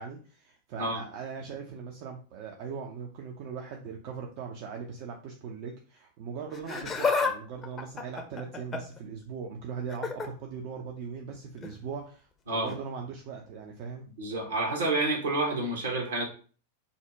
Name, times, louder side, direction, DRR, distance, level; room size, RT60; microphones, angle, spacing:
voice 1, 0.0-14.1, right 6 dB, 45° right, 1 dB, 0.4 m, -40 dB
Laughter, 6.5-7.3 7.6-9.0 9.9-10.3 11.6-11.8 12.7-12.8, left 4 dB, 20° left, 0.5 m, -30 dB
voice 2, 14.2-16.2, right 2 dB, 65° right, -1 dB, 1.0 m, -29 dB
2.6 x 2.0 x 3.4 m, 0.40 s
figure-of-eight pair, 90°, 0 cm